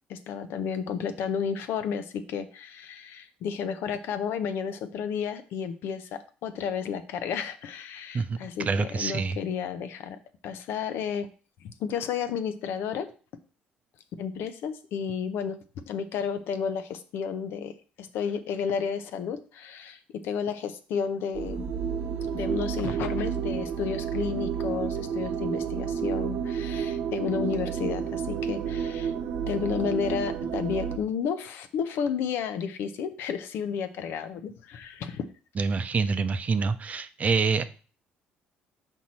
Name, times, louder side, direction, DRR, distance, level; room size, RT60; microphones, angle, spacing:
voice 1, 0.1-11.3 11.6-13.1 14.2-15.6 15.8-17.7 18.0-21.7 22.3-29.1 29.5-35.3, left 7 dB, 70° left, 10 dB, 0.7 m, -32 dB
voice 2, 8.7-9.4 35.6-37.6, right 4 dB, 40° right, 11 dB, 0.6 m, -26 dB
sound 1, 21.3-31.0, right 7 dB, 60° right, 0.8 m, -30 dB
6.0 x 4.5 x 4.2 m, 0.38 s
supercardioid pair, 80°, 4 cm